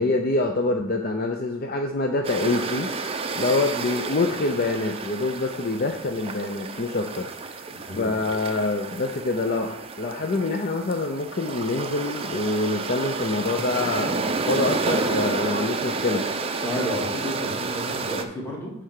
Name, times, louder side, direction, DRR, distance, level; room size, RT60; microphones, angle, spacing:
voice 1, 0.0-7.3 7.9-16.2, left 2 dB, 45° left, 4 dB, 0.5 m, -26 dB
sound 1, 2.2-18.2, right 3 dB, 25° right, 0.5 m, -30 dB
voice 2, 7.7-8.2 16.6-18.7, equal, 10° left, -3 dB, 2.0 m, -31 dB
9.4 x 3.4 x 6.5 m, 0.77 s
head